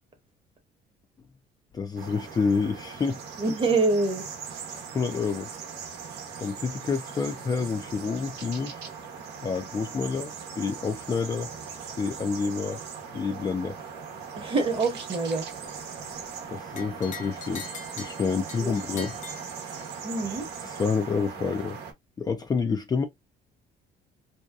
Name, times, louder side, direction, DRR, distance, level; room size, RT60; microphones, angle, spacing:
voice 1, 1.7-3.2 4.9-5.5 6.4-8.8 9.4-10.3 10.6-11.5 12.0-12.8 13.1-13.8 16.5-19.1 19.7-19.8 20.6-21.8 22.2-23.0, left 5 dB, 25° left, 0.4 m, -28 dB
sound 1, 2.0-21.9, right 6 dB, 80° right, 0.8 m, -40 dB
voice 2, 3.4-4.3 14.3-15.5 18.6-19.0 20.0-20.5, right 3 dB, 30° right, 0.9 m, -26 dB
sound 2, 16.8-20.1, left 5 dB, 50° left, 0.9 m, -43 dB
2.7 x 2.2 x 2.3 m
cardioid pair, 110°, 17 cm